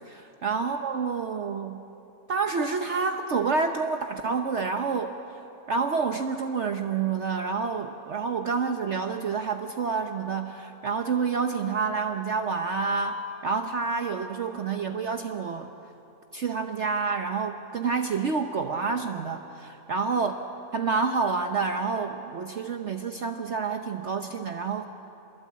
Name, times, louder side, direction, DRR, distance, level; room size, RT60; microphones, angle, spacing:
voice 1, 0.1-1.8 2.3-5.1 5.7-15.7 16.3-20.3 20.7-24.9, right 5 dB, 55° right, 5 dB, 1.1 m, -28 dB
27.0 x 22.0 x 8.5 m, 2.9 s
omnidirectional pair, 1.6 m